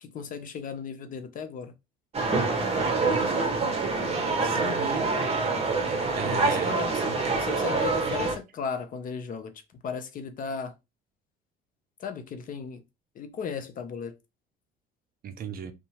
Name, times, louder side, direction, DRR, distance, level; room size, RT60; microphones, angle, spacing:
voice 1, 0.0-1.7 4.5-5.0 6.2-9.5 9.8-10.7 12.0-12.8 13.2-14.1, left 6 dB, 45° left, 0.6 m, -36 dB
sound 1, 2.1-8.4, right 3 dB, 30° right, 1.0 m, -26 dB
voice 2, 2.7-3.4 4.2-5.1 6.1-6.7 15.2-15.7, right 8 dB, 50° right, 0.5 m, -35 dB
2.7 x 2.2 x 2.8 m
supercardioid pair, 90°, 20 cm